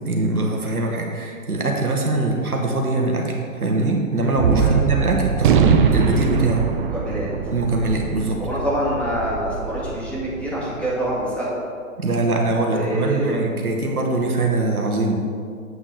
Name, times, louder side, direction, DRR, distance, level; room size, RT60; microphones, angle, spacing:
voice 1, 0.0-6.7 7.5-8.4 12.0-15.2, right 2 dB, 85° right, 0 dB, 1.4 m, -22 dB
Gunshot gunfire, 4.4-10.9, right 6 dB, 35° right, 0.5 m, -22 dB
voice 2, 6.8-7.3 8.4-11.5 12.7-13.4, equal, 5° left, -8 dB, 1.9 m, -26 dB
8.0 x 7.2 x 3.4 m, 2.2 s
figure-of-eight pair, 120°, 43 cm